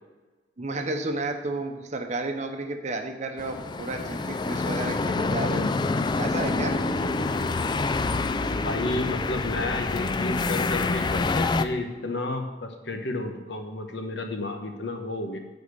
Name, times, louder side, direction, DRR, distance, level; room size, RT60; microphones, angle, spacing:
voice 1, 0.6-5.7 6.2-6.8, right 2 dB, 40° right, 5 dB, 0.8 m, -32 dB
sound 1, 3.4-11.6, left 3 dB, 25° left, 0.3 m, -27 dB
voice 2, 8.6-15.4, left 2 dB, 90° left, 5 dB, 1.1 m, -31 dB
10.0 x 4.3 x 6.7 m, 1.3 s
head